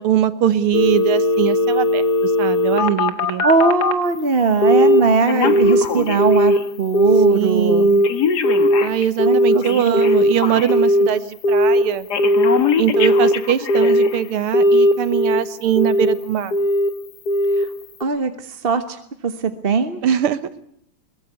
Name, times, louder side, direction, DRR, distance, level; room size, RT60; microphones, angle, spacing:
voice 1, 0.0-3.4 7.3-8.1 8.8-12.1 12.8-16.5 20.0-20.4, right 9 dB, 85° right, 13 dB, 2.1 m, -21 dB
Telephone, 0.7-4.0 4.6-5.0 5.3-6.6 6.9-7.3 7.7-11.1 11.4-11.8 12.1-14.2 14.5-15.4 15.8-16.1 16.5-16.9 17.3-17.6 18.0-18.1, left 1 dB, 50° left, 1.9 m, -17 dB
voice 2, 3.4-7.9 9.2-10.0 17.6-17.7 18.0-20.0, right 5 dB, 35° right, 8 dB, 1.1 m, -20 dB
22.5 x 21.0 x 8.2 m, 0.71 s
omnidirectional pair, 2.4 m